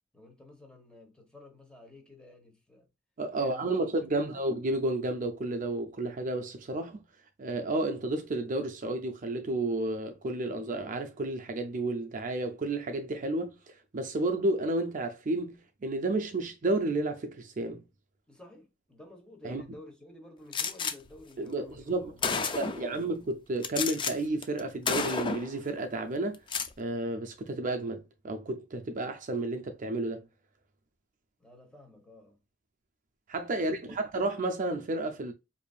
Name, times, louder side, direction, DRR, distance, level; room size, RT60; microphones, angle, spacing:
voice 1, 0.1-2.9 3.3-4.4 18.3-23.0 31.4-32.4 33.5-34.0, left 1 dB, 5° left, 1.1 m, -52 dB
voice 2, 3.2-7.0 7.4-17.8 19.4-19.6 21.4-22.1 22.6-26.4 26.8-30.3 33.3-35.3, right 2 dB, 45° right, 0.5 m, -31 dB
Gunshot gunfire, 20.5-20.9 21.8-21.9 22.2-22.9 23.6-24.1 24.4-24.6 24.9-25.5 26.3-26.7, left 5 dB, 25° left, 0.4 m, -30 dB
4.9 x 2.6 x 2.3 m
head